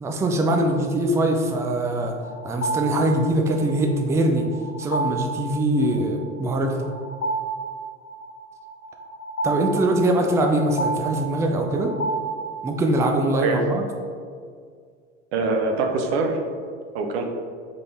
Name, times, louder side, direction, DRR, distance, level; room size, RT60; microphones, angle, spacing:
voice 1, 0.0-2.1 2.4-4.5 4.8-6.9 9.4-11.9 12.6-13.8, right 1 dB, 10° right, 3 dB, 0.3 m, -22 dB
sound 1, 2.2-13.0, right 3 dB, 35° left, 0.8 m, -31 dB
voice 2, 15.3-16.4 16.9-17.3, right 3 dB, 60° right, 3 dB, 0.7 m, -23 dB
3.7 x 3.7 x 3.4 m, 2.1 s
figure-of-eight pair, 75°, 37 cm